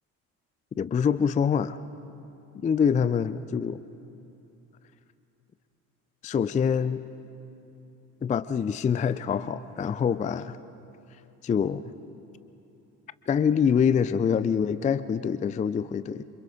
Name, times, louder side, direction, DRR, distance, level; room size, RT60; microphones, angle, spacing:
voice 1, 0.8-1.8 2.5-3.8 6.2-7.0 8.2-10.6 11.4-11.8 13.3-16.2, left 7 dB, 20° left, 16 dB, 0.4 m, -25 dB
28.0 x 26.0 x 3.8 m, 2.8 s
hypercardioid pair, 60°, 44 cm